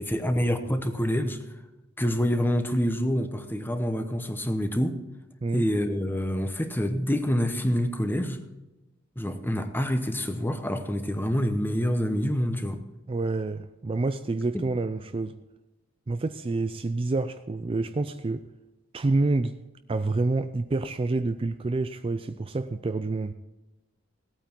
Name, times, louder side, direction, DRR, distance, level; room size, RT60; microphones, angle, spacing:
voice 1, 0.0-1.4 2.0-5.0 5.5-8.4 9.2-12.8 14.5-14.6, equal, 10° left, 8 dB, 0.9 m, -27 dB
voice 2, 13.1-15.4 16.1-18.4 18.9-19.6 19.9-23.3, right 3 dB, 25° right, 10 dB, 0.4 m, -28 dB
17.5 x 8.9 x 4.5 m, 1.0 s
head